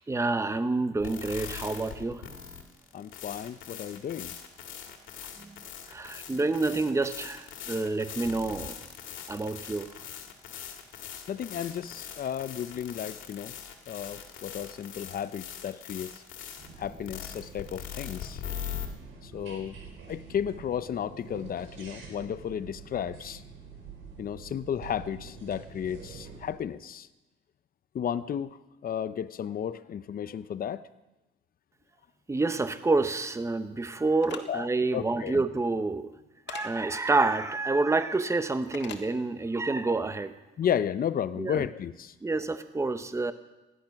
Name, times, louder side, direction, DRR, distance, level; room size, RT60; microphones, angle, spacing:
voice 1, 0.1-2.2 5.4-5.5 5.9-8.8 9.3-9.9 32.3-36.1 36.5-40.3 41.4-41.6 42.2-43.3, right 3 dB, 15° right, 11 dB, 0.9 m, -28 dB
sound 1, 1.0-18.9, left 9 dB, 80° left, 2.1 m, -42 dB
voice 2, 2.9-4.3 11.3-13.5 13.9-16.2 16.8-18.4 19.2-19.8 20.1-23.4 24.2-27.1 27.9-30.8 34.5-34.7 34.9-35.4 40.6-42.1, left 9 dB, 45° left, 14 dB, 0.6 m, -33 dB
sound 2, 16.6-26.5, right 5 dB, 80° right, 4.1 m, -47 dB
sound 3, 34.2-34.4 36.5-36.7 38.7-39.0, left 7 dB, 65° left, 1.7 m, -40 dB
16.5 x 11.0 x 5.9 m, 1.0 s
cardioid pair, 90°, 20 cm